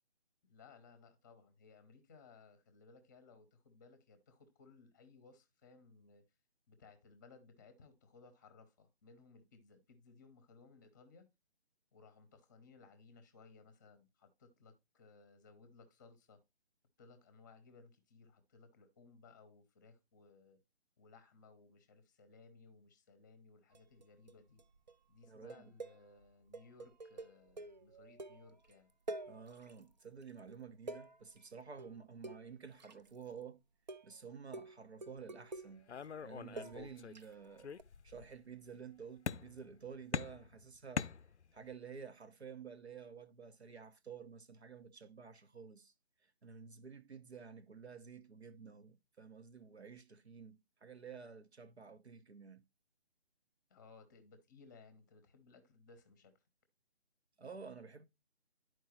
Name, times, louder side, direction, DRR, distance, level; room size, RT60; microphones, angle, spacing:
voice 1, 0.4-6.2 6.7-11.3 11.9-16.4 17.0-20.6 21.0-24.6 25.1-28.9 53.7-56.3, left 4 dB, 15° left, 0.8 m, -61 dB
sound 1, 23.7-24.3 24.6-24.9 25.2-28.7 29.1-29.9 30.2-33.4 33.9-34.2 34.5-37.3 37.8-37.9, right 2 dB, 45° right, 0.4 m, -48 dB
voice 2, 25.3-25.7 29.3-33.6 34.0-35.9 36.2-37.7 38.0-41.1 41.5-45.9 46.4-52.6 57.4-58.0, right 6 dB, 75° right, 0.9 m, -51 dB
sound 2, 35.9-37.2 37.6-38.3 39.3-39.8 40.1-41.7, left 7 dB, 85° left, 0.5 m, -42 dB
11.0 x 4.6 x 3.0 m
figure-of-eight pair, 145°, 33 cm